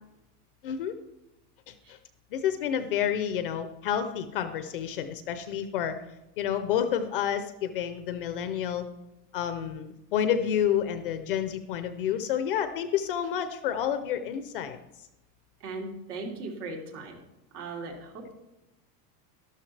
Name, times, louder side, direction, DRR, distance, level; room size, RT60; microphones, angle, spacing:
voice 1, 0.6-1.0 1.7-2.0 2.3-5.9 6.4-8.9 9.3-14.8, left 9 dB, 35° left, 10 dB, 0.4 m, -29 dB
voice 2, 15.6-17.2 17.5-18.3, right 3 dB, 65° right, 0 dB, 3.4 m, -38 dB
12.5 x 12.0 x 3.2 m, 0.95 s
supercardioid pair, 175°, 49 cm